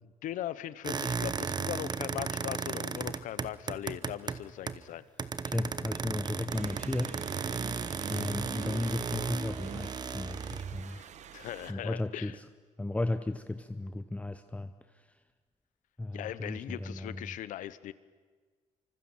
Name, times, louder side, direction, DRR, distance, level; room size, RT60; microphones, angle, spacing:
voice 1, 0.2-5.1 10.9-11.1 11.3-12.4 16.1-17.9, left 12 dB, 90° left, 16 dB, 1.0 m, -39 dB
sound 1, 0.8-4.9 5.2-10.8, right 5 dB, 30° right, 1.0 m, -35 dB
voice 2, 5.4-7.2 8.1-11.0 11.7-12.3 12.8-14.7 16.0-17.3, left 2 dB, 10° left, 9 dB, 0.9 m, -35 dB
sound 2, 6.5-11.7, right 9 dB, 65° right, 1.2 m, -45 dB
26.0 x 25.0 x 7.4 m, 1.5 s
cardioid pair, 110°, 13 cm